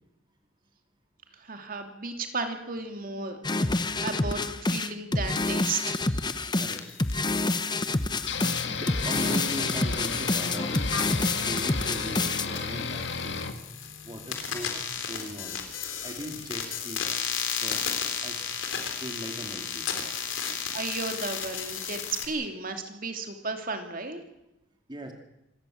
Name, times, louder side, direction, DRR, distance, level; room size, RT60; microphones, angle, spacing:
voice 1, 1.4-3.7 4.0-6.1 20.7-24.2, right 3 dB, 45° right, 5 dB, 2.8 m, -34 dB
sound 1, 3.4-12.5, left 2 dB, 25° left, 0.9 m, -28 dB
sound 2, 5.4-22.3, left 7 dB, 85° left, 3.7 m, -36 dB
sound 3, 8.3-13.5, left 5 dB, 65° left, 2.0 m, -33 dB
voice 2, 8.7-11.0 11.4-13.4 14.0-15.6 16.0-17.1 17.6-17.9 18.2-18.5 18.9-19.9 20.4-20.6 24.9-25.1, equal, 25° right, 3 dB, 2.5 m, -39 dB
27.0 x 14.0 x 8.7 m, 0.91 s
head